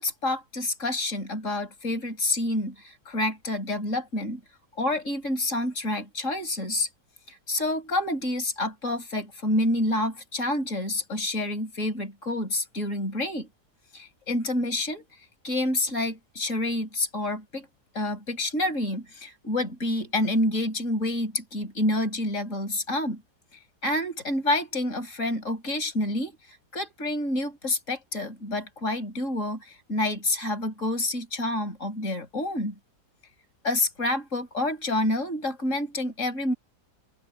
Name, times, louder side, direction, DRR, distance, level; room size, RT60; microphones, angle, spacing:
voice 1, 0.0-4.4 4.8-6.9 7.3-13.5 13.9-15.1 15.4-17.7 17.9-23.2 23.8-32.7 33.6-36.5, left 1 dB, 50° left, 7.4 m, -28 dB
open air
omnidirectional pair, 1.7 m